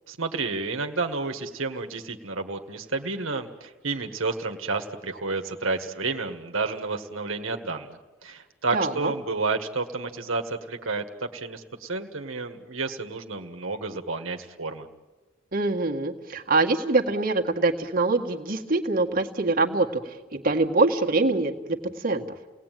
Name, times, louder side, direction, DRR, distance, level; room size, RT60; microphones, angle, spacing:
voice 1, 0.1-14.9, right 3 dB, 80° right, 5 dB, 1.6 m, -31 dB
voice 2, 8.7-9.1 15.5-22.2, right 3 dB, 45° right, 2 dB, 1.8 m, -24 dB
29.0 x 18.5 x 9.3 m, 1.3 s
head